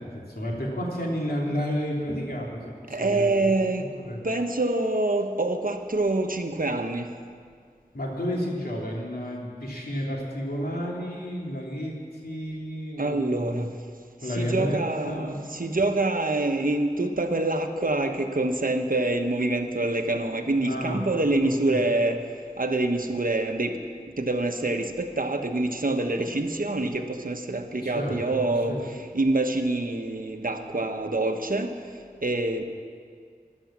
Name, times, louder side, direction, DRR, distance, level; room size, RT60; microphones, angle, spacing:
voice 1, 0.0-2.6 2.9-3.5 3.8-4.2 7.9-13.7 14.2-15.4 20.6-21.0 21.3-21.8 27.8-28.4 28.7-29.0, equal, 85° left, -3 dB, 2.9 m, -31 dB
voice 2, 2.9-3.9 4.2-7.1 13.0-13.7 14.2-22.2 22.6-23.8 24.2-31.7 32.2-32.6, right 2 dB, 65° right, 5 dB, 1.2 m, -26 dB
14.5 x 12.0 x 7.5 m, 2.1 s
wide cardioid pair, 45°, 15 cm